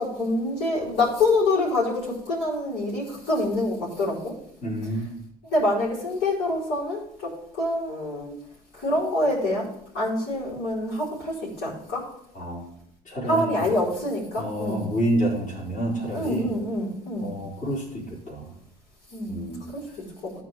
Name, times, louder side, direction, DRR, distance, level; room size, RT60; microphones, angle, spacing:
voice 1, 0.0-4.4 5.5-8.3 8.7-12.1 13.2-14.8 16.1-17.3 19.1-20.3, left 2 dB, 65° left, -6 dB, 4.7 m, -26 dB
voice 2, 4.6-5.1 12.3-12.8 13.0-13.7 14.4-16.5 17.2-18.5 19.3-19.7, right 1 dB, 40° left, -6 dB, 4.6 m, -28 dB
14.0 x 4.8 x 4.8 m, 0.71 s
hypercardioid pair, 65°, 19 cm